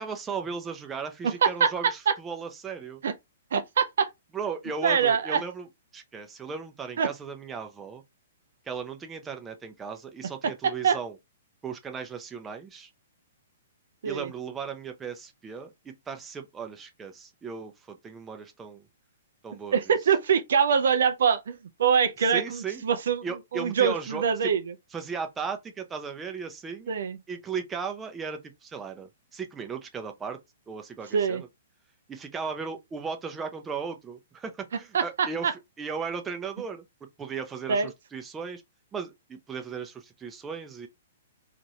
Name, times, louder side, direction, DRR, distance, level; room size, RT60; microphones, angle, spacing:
voice 1, 0.0-3.0 4.3-5.7 5.9-8.0 8.7-11.1 11.6-12.9 14.0-18.9 19.4-19.8 22.3-22.8 23.2-24.5 24.9-26.9 27.3-30.4 30.7-31.5 32.1-35.5 35.8-36.8 37.2-38.6 38.9-40.9, right 5 dB, 15° right, 0.6 m, -36 dB
voice 2, 1.2-1.7 2.1-2.2 3.0-3.1 3.5-4.1 4.8-5.4 7.0-7.1 10.4-11.0 14.0-14.3 19.7-23.2 23.5-24.6 26.9-27.2 31.1-31.4 34.9-35.5 37.7-37.9, right 6 dB, 70° right, 0.4 m, -24 dB
2.7 x 2.5 x 3.1 m
hypercardioid pair, 125°, 0 cm